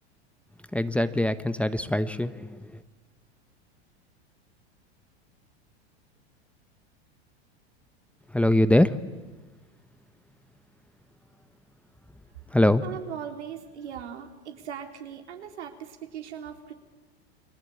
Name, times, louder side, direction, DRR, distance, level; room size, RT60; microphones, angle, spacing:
voice 1, 0.7-2.5 8.3-8.9 12.5-12.8, left 1 dB, 5° left, 12 dB, 1.0 m, -22 dB
voice 2, 12.8-16.7, right 8 dB, 80° right, 5 dB, 3.7 m, -39 dB
29.5 x 22.5 x 8.6 m, 1.3 s
hypercardioid pair, 105°, 33 cm